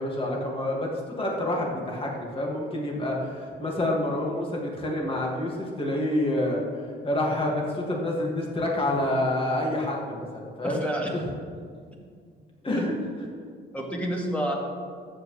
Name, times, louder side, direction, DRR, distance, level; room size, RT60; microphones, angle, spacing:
voice 1, 0.0-10.8 11.1-11.3 12.6-12.9, left 1 dB, 25° left, -2 dB, 2.3 m, -28 dB
voice 2, 10.6-11.1 12.7-12.8 13.7-14.5, equal, 5° left, -2 dB, 2.3 m, -29 dB
13.5 x 8.3 x 3.4 m, 2.1 s
cardioid pair, 90°, 20 cm